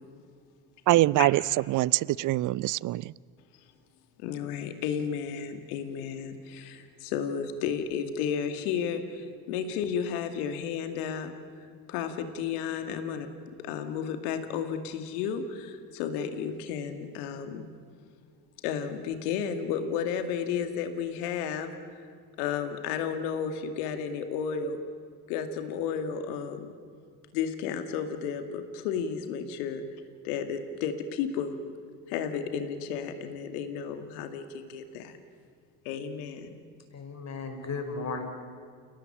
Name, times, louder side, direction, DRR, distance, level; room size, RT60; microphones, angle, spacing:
voice 1, 0.9-1.4 1.7-3.1, right 17 dB, 45° right, 0.6 m, -24 dB
voice 2, 4.2-11.3 11.9-13.3 13.6-17.7 18.6-22.0 22.4-24.8 25.3-26.7 27.3-29.9 30.2-31.6 32.1-35.2 35.8-36.5, left 7 dB, 75° left, 2.4 m, -32 dB
voice 3, 36.9-38.3, left 4 dB, 35° left, 5.2 m, -35 dB
29.5 x 18.0 x 8.8 m
hypercardioid pair, 65°, 46 cm